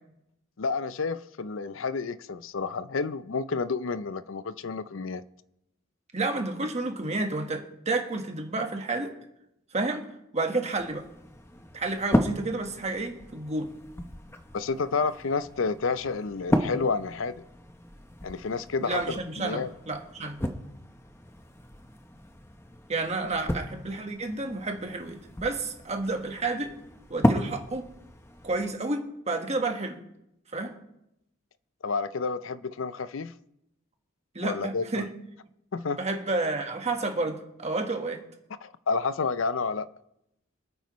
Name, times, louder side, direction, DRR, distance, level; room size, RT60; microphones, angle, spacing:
voice 1, 0.6-5.2 14.5-17.3 18.2-19.7 23.2-23.3 31.8-33.3 34.4-35.1 35.7-36.0 38.6-39.9, left 4 dB, 75° left, 0.5 m, -30 dB
voice 2, 6.1-9.1 9.7-10.0 10.3-11.0 11.7-13.7 18.8-20.4 22.9-26.8 27.1-27.9 28.4-30.0 30.5-30.7 34.3-35.1 36.0-38.2, right 2 dB, 35° right, 1.4 m, -30 dB
sound 1, 10.7-28.7, equal, 15° left, 0.8 m, -34 dB
25.0 x 9.2 x 3.1 m
head